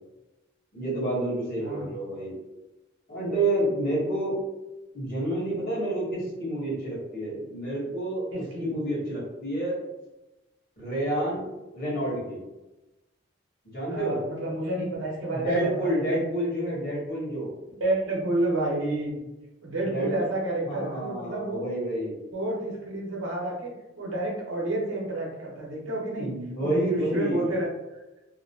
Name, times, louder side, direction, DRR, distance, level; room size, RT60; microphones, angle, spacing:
voice 1, 0.7-2.3 3.1-4.3 4.9-9.8 10.8-11.4 11.7-12.4 13.6-14.2 15.3-17.5 19.9-20.1 20.7-22.2 26.1-27.5, right 1 dB, 55° left, -7 dB, 1.2 m, -29 dB
voice 2, 1.6-1.9 8.3-8.7 13.9-16.2 17.8-19.3 19.6-21.6 22.3-27.7, right 2 dB, 85° right, -2 dB, 0.9 m, -30 dB
2.8 x 2.0 x 2.7 m, 1.0 s
head